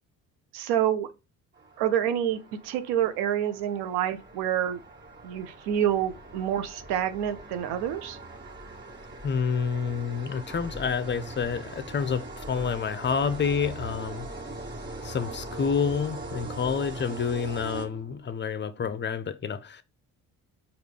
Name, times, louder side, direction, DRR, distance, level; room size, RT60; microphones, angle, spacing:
voice 1, 0.5-1.1 1.8-4.8 5.2-8.2, right 10 dB, 85° right, 0.6 m, -27 dB
sound 1, 1.5-18.4, right 2 dB, 30° right, 1.7 m, -41 dB
voice 2, 9.2-14.3 15.0-19.9, left 6 dB, 30° left, 0.6 m, -29 dB
4.8 x 2.5 x 3.4 m
supercardioid pair, 70°, 38 cm